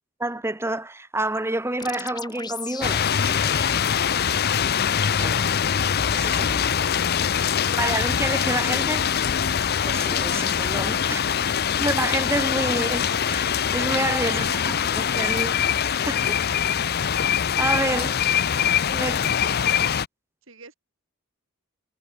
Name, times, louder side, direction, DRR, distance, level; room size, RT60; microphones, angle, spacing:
voice 1, 0.2-3.7 5.2-5.5 6.1-6.7 7.8-9.1 9.8-11.2 11.8-14.5 15.0-15.6 16.0-16.3 17.6-18.2 18.9-19.2, right 2 dB, 10° right, 1.5 m, -28 dB
sound 1, 1.8-5.3, left 5 dB, 20° left, 2.5 m, -38 dB
sound 2, 2.8-20.1, left 8 dB, 50° left, 0.6 m, -23 dB
voice 2, 11.1-11.6 14.3-14.9 16.2-16.5 19.0-19.8 20.5-20.7, right 3 dB, 65° right, 7.6 m, -44 dB
head